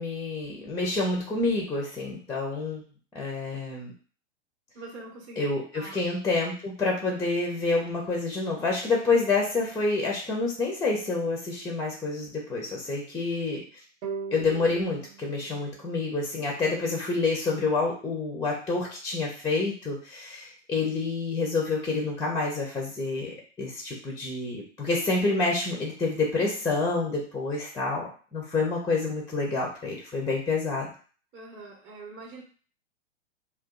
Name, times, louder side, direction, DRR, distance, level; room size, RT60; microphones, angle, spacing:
voice 1, 0.0-2.8 3.1-3.9 5.4-13.6 14.3-30.9, left 3 dB, 10° left, -1 dB, 0.5 m, -28 dB
voice 2, 4.7-5.9 31.3-32.4, right 3 dB, 30° right, 0 dB, 0.8 m, -43 dB
sound 1, 14.0-17.3, right 5 dB, 80° right, 0.8 m, -41 dB
2.6 x 2.3 x 3.6 m, 0.41 s
hypercardioid pair, 105°, 37 cm